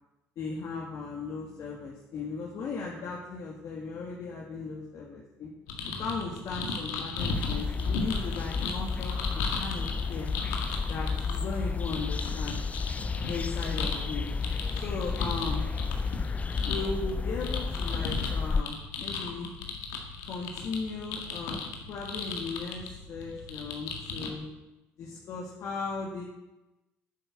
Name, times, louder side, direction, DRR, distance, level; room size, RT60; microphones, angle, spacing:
voice 1, 0.4-5.5 6.0-10.3 10.9-12.6 13.3-14.3 14.8-15.7 16.6-19.5 20.2-21.6 21.9-24.5 25.0-26.2, left 4 dB, 60° left, -3 dB, 2.2 m, -37 dB
sound 1, 5.7-24.3, left 4 dB, 85° left, 1.8 m, -37 dB
sound 2, 7.2-18.6, left 4 dB, 25° left, 0.4 m, -32 dB
9.9 x 7.5 x 7.8 m, 1.0 s
supercardioid pair, 75°, 6 cm